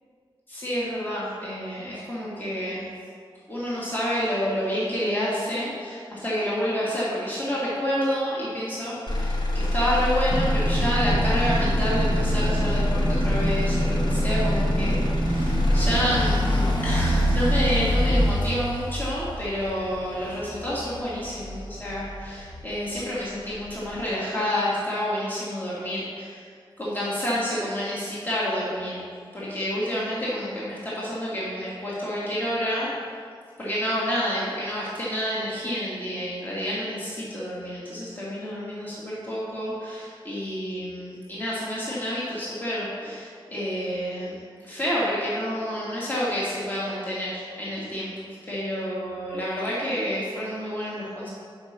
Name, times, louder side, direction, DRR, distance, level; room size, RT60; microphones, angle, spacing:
voice 1, 0.5-2.9 3.5-26.5 26.8-29.0 29.3-32.9 33.6-51.3, equal, 20° left, -8 dB, 1.7 m, -29 dB
Motor vehicle (road), 9.1-23.1 23.5-24.1, left 1 dB, 50° left, 0.9 m, -25 dB
sound 1, 10.3-18.3, right 2 dB, 20° right, 0.3 m, -28 dB
5.4 x 5.2 x 6.4 m, 2.1 s
wide cardioid pair, 80°, 9 cm